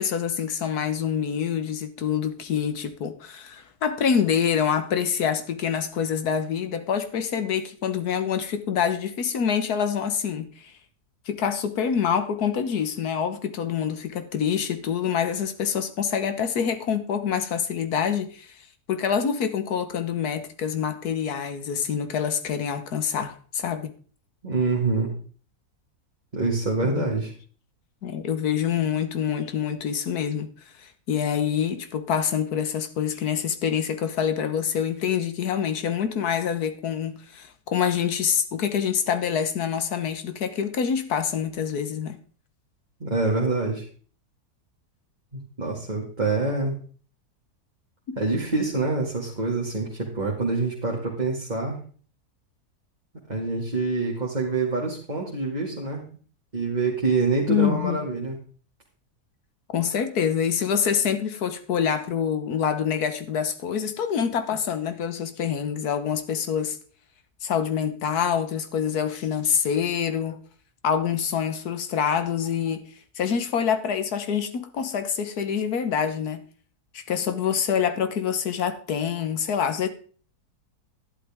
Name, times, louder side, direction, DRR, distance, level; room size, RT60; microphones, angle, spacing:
voice 1, 0.0-10.7 11.3-18.5 18.9-23.9 26.8-27.1 28.0-30.5 30.8-42.2 48.1-48.2 57.5-58.0 59.7-66.8 67.4-70.4 70.8-72.8 73.2-76.4 76.9-79.9, left 7 dB, 75° left, 1.6 m, -26 dB
voice 2, 24.4-25.1 26.3-27.3 43.0-43.8 45.3-46.7 48.2-51.8 53.3-56.1 56.5-58.4, right 3 dB, 25° right, 2.2 m, -26 dB
12.0 x 11.0 x 3.6 m
omnidirectional pair, 1.7 m